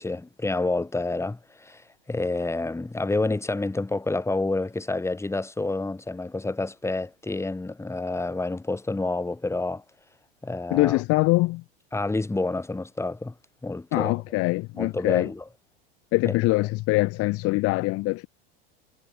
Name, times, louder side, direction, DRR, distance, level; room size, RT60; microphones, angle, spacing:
voice 1, 0.0-9.8 10.4-11.0 11.9-13.3 13.6-14.1 14.7-15.4 16.3-16.4, left 2 dB, 10° left, 6.0 m, -28 dB
voice 2, 10.7-11.6 13.9-15.3 16.1-18.3, left 22 dB, 50° left, 1.6 m, -23 dB
supercardioid pair, 105°, 29 cm